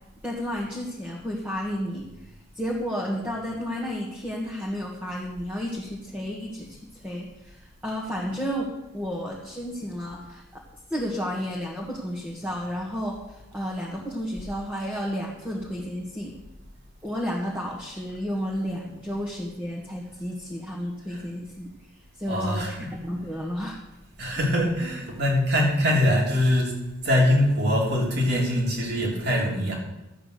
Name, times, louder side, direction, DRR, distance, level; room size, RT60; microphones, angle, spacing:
voice 1, 0.2-2.1 2.6-10.6 10.9-16.3 17.0-21.7 22.2-22.7 23.0-23.8, equal, 10° right, -4 dB, 1.9 m, -32 dB
voice 2, 22.3-22.9 24.2-26.7 27.0-29.8, left 1 dB, 50° right, -1 dB, 3.5 m, -23 dB
13.0 x 8.6 x 6.7 m, 0.97 s
head